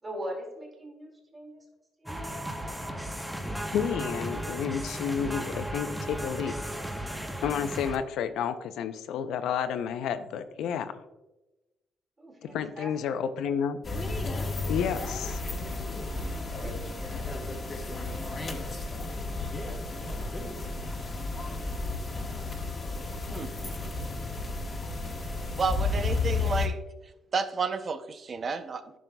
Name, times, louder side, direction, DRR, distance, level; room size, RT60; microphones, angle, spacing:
voice 1, 0.0-1.7 2.0-2.3 12.2-13.2 16.3-17.2, equal, 25° right, 0 dB, 2.1 m, -42 dB
sound 1, 2.1-8.0, right 1 dB, 5° right, 0.8 m, -35 dB
voice 2, 3.7-6.5 7.4-10.9 12.5-13.8 14.7-15.4, left 8 dB, 80° left, 10 dB, 0.5 m, -30 dB
sound 2, 13.8-26.7, left 3 dB, 30° left, 1.2 m, -33 dB
voice 3, 25.6-26.8 27.3-28.9, right 5 dB, 40° right, 11 dB, 0.6 m, -31 dB
11.0 x 6.1 x 2.3 m, 1.0 s
cardioid pair, 100°, 0 cm